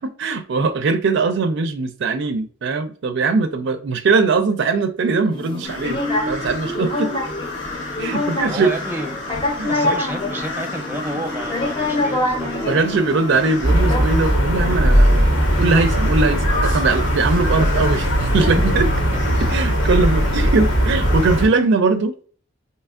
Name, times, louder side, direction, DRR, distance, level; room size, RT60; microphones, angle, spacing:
voice 1, 0.0-6.0 6.3-7.2 8.0-8.7 9.6-10.0 12.6-18.9 19.5-22.2, right 4 dB, 65° right, 0.4 m, -20 dB
sound 1, 5.3-14.0, left 2 dB, 25° left, 0.6 m, -26 dB
sound 2, 5.6-21.4, left 2 dB, 65° left, 0.9 m, -34 dB
voice 2, 8.1-9.2 9.7-13.1 18.5-18.6, right 1 dB, 10° right, 0.7 m, -31 dB
sound 3, 13.6-21.5, equal, 85° left, 1.1 m, -18 dB
4.3 x 2.9 x 2.4 m
head